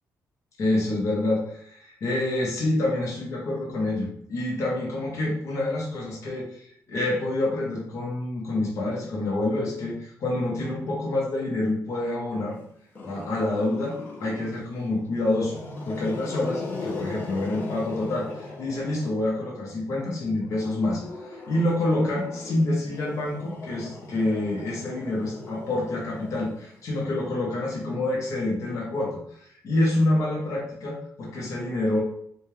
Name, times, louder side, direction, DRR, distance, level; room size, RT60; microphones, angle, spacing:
voice 1, 0.6-12.6 13.0-15.6 15.8-21.0 21.3-32.0, left 2 dB, 50° left, -3 dB, 1.1 m, -27 dB
Growling, 12.9-14.7 15.2-19.4 20.4-26.9, left 3 dB, 30° left, 0.7 m, -38 dB
4.1 x 2.3 x 3.3 m, 0.68 s
cardioid pair, 175°, 7 cm